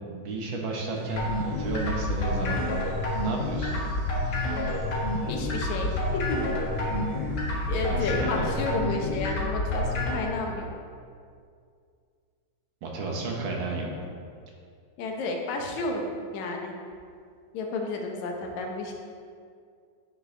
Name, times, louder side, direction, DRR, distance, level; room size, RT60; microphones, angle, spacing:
voice 1, 0.0-2.7 3.2-3.8 7.9-8.5 12.8-13.9, right 3 dB, 60° right, -1 dB, 1.4 m, -32 dB
sound 1, 0.9-8.2, right 3 dB, 75° right, 2.3 m, -43 dB
sound 2, 1.0-10.2, left 2 dB, 45° left, 1.8 m, -29 dB
voice 2, 5.3-6.4 7.7-10.7 15.0-16.7 17.5-18.9, left 3 dB, 80° left, 1 dB, 2.1 m, -31 dB
10.0 x 6.5 x 3.3 m, 2.2 s
omnidirectional pair, 3.3 m